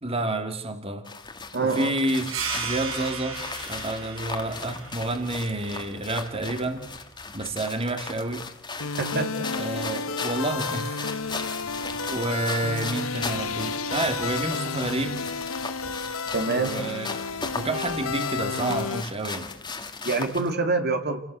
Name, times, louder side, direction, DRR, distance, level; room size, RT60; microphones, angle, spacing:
voice 1, 0.0-1.1 1.6-3.4 3.7-6.8 7.3-8.5 9.5-11.1 12.1-15.2 16.5-17.1 17.5-19.5, right 2 dB, 30° right, 6 dB, 2.3 m, -29 dB
sound 1, 1.1-20.5, left 4 dB, 20° left, 2.3 m, -37 dB
voice 2, 1.5-1.9 9.0-9.5 16.3-16.7 20.0-21.2, right 3 dB, 50° right, 6 dB, 2.3 m, -26 dB
sound 2, 2.3-7.4, right 5 dB, 80° right, 6.5 m, -36 dB
sound 3, 8.8-19.0, left 5 dB, 85° left, 1.0 m, -31 dB
29.5 x 18.0 x 8.1 m, 0.74 s
head